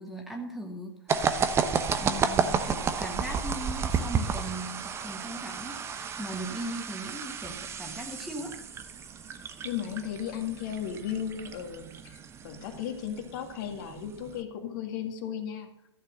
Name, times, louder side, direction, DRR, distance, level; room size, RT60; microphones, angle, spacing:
voice 1, 0.0-1.4 2.0-8.5, right 1 dB, ahead, 2 dB, 1.5 m, -39 dB
sound 1, 1.1-14.4, right 6 dB, 20° right, 0.9 m, -32 dB
voice 2, 9.6-12.2 12.4-15.7, left 9 dB, 45° left, 4 dB, 2.1 m, -35 dB
13.5 x 6.6 x 6.5 m, 0.81 s
figure-of-eight pair, 105°, 14 cm